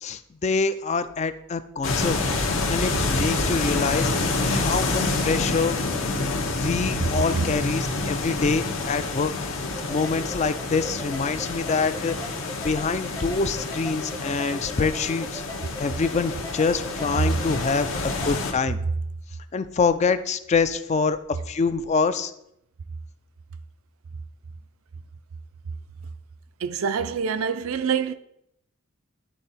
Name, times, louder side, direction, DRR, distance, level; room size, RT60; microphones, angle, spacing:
voice 1, 0.0-2.2 2.7-5.8 6.6-9.3 9.9-12.1 12.6-15.4 15.8-18.8 19.5-21.2 21.5-22.3, left 4 dB, 30° left, 0.3 m, -25 dB
sound 1, 1.8-18.5, left 3 dB, 65° left, 1.1 m, -28 dB
sound 2, 9.6-18.3, left 1 dB, 15° left, 0.7 m, -40 dB
voice 2, 26.6-28.1, right 6 dB, 75° right, 0.4 m, -26 dB
11.0 x 3.7 x 4.2 m
head